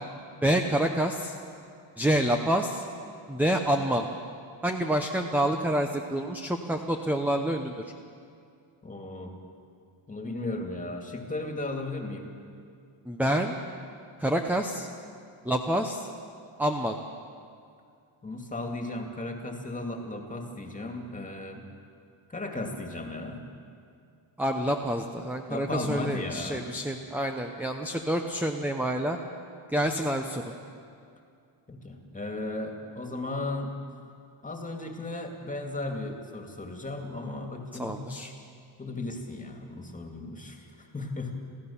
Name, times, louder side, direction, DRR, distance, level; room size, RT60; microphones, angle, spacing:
voice 1, 0.4-1.3 2.0-2.8 3.3-4.1 4.6-7.7 13.1-13.5 14.2-14.9 15.4-16.1 16.6-17.0 24.4-29.2 29.7-30.4 37.8-38.3, right 1 dB, 5° right, 4 dB, 0.8 m, -27 dB
voice 2, 8.8-9.3 10.1-12.4 18.2-21.6 22.3-23.4 25.5-26.6 31.7-33.7 34.4-38.2 38.8-41.4, left 2 dB, 15° left, 3 dB, 2.2 m, -35 dB
27.5 x 15.5 x 7.1 m, 2.4 s
wide cardioid pair, 160°, 49 cm